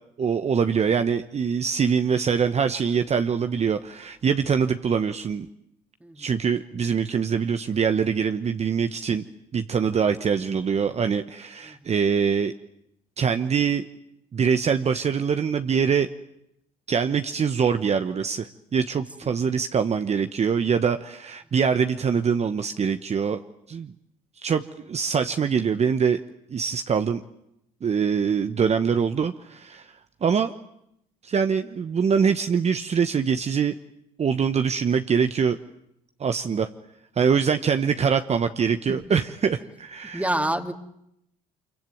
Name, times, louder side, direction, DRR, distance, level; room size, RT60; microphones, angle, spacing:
voice 1, 0.2-5.5 6.2-9.2 9.5-12.5 13.2-13.9 14.3-16.1 16.9-23.4 23.7-23.9 24.4-26.2 26.5-27.2 27.8-29.9 30.2-30.5 31.2-33.7 34.2-35.6 36.2-36.7 37.2-40.3, right 6 dB, 40° right, 8 dB, 1.1 m, -24 dB
voice 2, 40.1-40.7, right 1 dB, 10° right, 7 dB, 2.5 m, -28 dB
25.5 x 23.0 x 9.3 m, 0.78 s
supercardioid pair, 70°, 17 cm